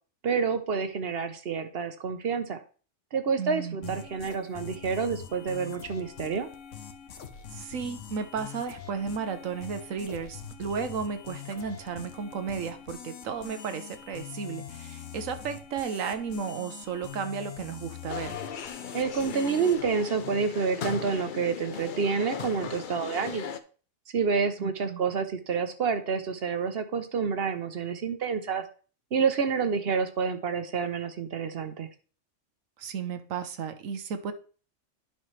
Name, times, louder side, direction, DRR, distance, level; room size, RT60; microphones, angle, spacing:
voice 1, 0.2-2.6 3.1-6.5 18.9-23.6 24.1-28.6 29.1-31.9, right 5 dB, 55° right, 0.9 m, -28 dB
voice 2, 3.4-4.0 7.5-18.4 24.6-25.0 32.8-34.3, right 6 dB, 90° right, 1.2 m, -34 dB
sound 1, 3.8-19.9, left 8 dB, 70° left, 1.2 m, -43 dB
sound 2, 18.1-23.6, left 7 dB, 55° left, 0.6 m, -38 dB
10.5 x 5.6 x 3.2 m
omnidirectional pair, 1.3 m